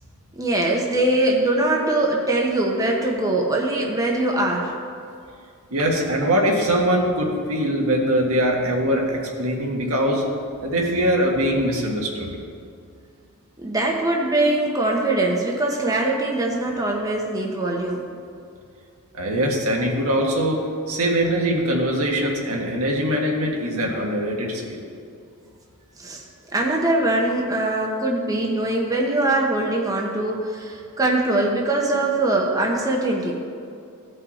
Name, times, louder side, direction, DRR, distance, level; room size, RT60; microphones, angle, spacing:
voice 1, 0.4-4.7 13.6-18.0 26.0-26.2 26.5-33.3, right 2 dB, 15° right, -1 dB, 1.0 m, -22 dB
voice 2, 5.7-10.2 10.6-12.3 19.1-24.8, equal, 70° right, 0 dB, 1.6 m, -22 dB
16.0 x 5.6 x 4.2 m, 2.4 s
head